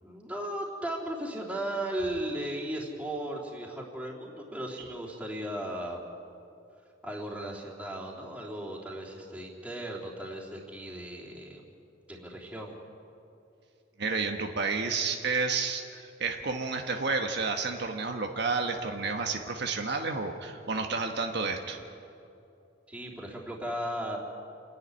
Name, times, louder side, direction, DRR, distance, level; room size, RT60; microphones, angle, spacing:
voice 1, 0.0-6.0 7.0-11.6 12.1-12.7 22.9-24.2, right 1 dB, 5° right, -4 dB, 3.4 m, -36 dB
voice 2, 14.0-21.8, right 4 dB, 65° right, 3 dB, 1.3 m, -31 dB
28.0 x 10.5 x 9.9 m, 2.7 s
head